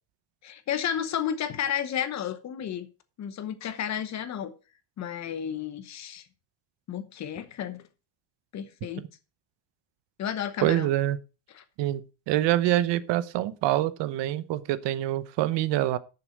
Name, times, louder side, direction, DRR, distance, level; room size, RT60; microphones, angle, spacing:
voice 1, 0.4-2.9 3.2-4.5 5.0-6.3 6.9-7.9 8.5-9.0 10.2-10.9 11.5-11.6, left 9 dB, 35° left, 1.0 m, -32 dB
voice 2, 10.6-11.2 11.8-12.0 12.3-16.0, right 14 dB, 60° right, 0.9 m, -25 dB
11.0 x 6.9 x 5.0 m
cardioid pair, 180°, 48 cm